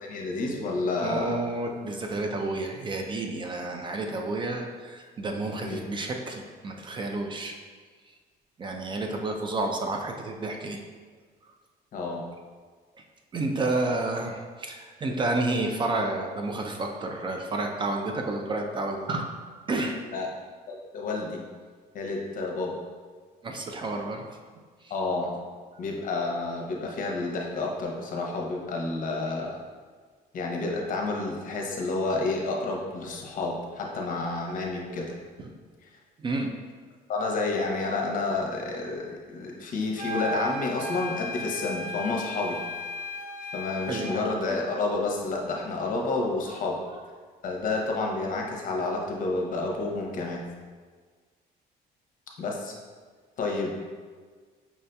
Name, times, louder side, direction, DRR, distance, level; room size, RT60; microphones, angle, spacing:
voice 1, 0.0-1.4 5.6-5.9 11.9-12.2 20.1-20.3 20.7-21.4 21.9-22.8 24.9-25.3 25.8-29.6 30.3-35.1 37.1-42.6 43.5-46.8 47.4-50.4 52.4-52.7 53.4-53.8, left 3 dB, 50° left, 0 dB, 0.7 m, -30 dB
voice 2, 1.0-7.5 8.6-10.8 13.3-19.3 19.7-20.0 23.4-24.2 36.2-36.5 43.9-44.3 46.5-46.6 46.9-47.0, right 2 dB, 30° right, 3 dB, 0.3 m, -30 dB
sound 1, 40.0-44.2, left 1 dB, 45° right, 0.8 m, -35 dB
5.6 x 2.6 x 2.2 m, 1.5 s
cardioid pair, 110°, 17 cm